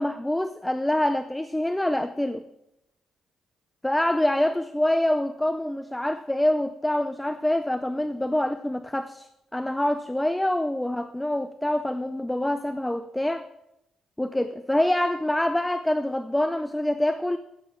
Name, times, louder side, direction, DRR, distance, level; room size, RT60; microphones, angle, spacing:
voice 1, 0.0-2.4 3.8-13.5 14.2-17.4, left 1 dB, 10° left, 11 dB, 0.5 m, -25 dB
15.0 x 7.7 x 3.8 m, 0.86 s
cardioid pair, 90°, 0 cm